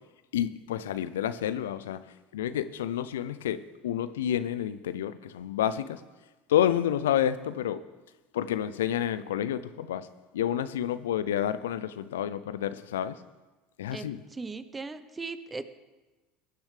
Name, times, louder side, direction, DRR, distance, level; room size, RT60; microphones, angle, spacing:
voice 1, 0.3-2.0 2.3-6.0 6.5-7.8 8.3-10.1 10.3-13.2 13.8-14.2, left 10 dB, 75° left, 14 dB, 0.5 m, -29 dB
voice 2, 13.9-15.8, right 4 dB, 20° right, 12 dB, 1.0 m, -39 dB
20.5 x 10.0 x 3.4 m, 1.2 s
hypercardioid pair, 70°, 0 cm